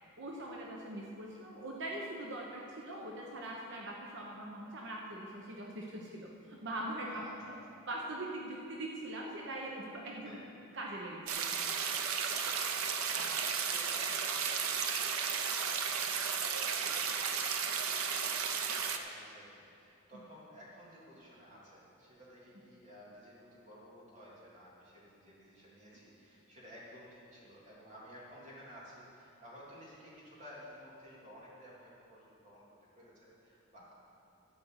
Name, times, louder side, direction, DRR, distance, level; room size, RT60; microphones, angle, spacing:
voice 1, 0.2-7.2 7.9-10.4 10.7-11.2 20.1-20.2, right 1 dB, 55° right, -2 dB, 1.1 m, -42 dB
voice 2, 7.1-7.6 10.2-10.4 12.3-32.6 33.0-33.9, equal, 35° right, -7 dB, 3.1 m, -54 dB
sound 1, 11.3-19.0, right 6 dB, 85° right, 0.7 m, -34 dB
13.0 x 5.3 x 8.1 m, 2.6 s
head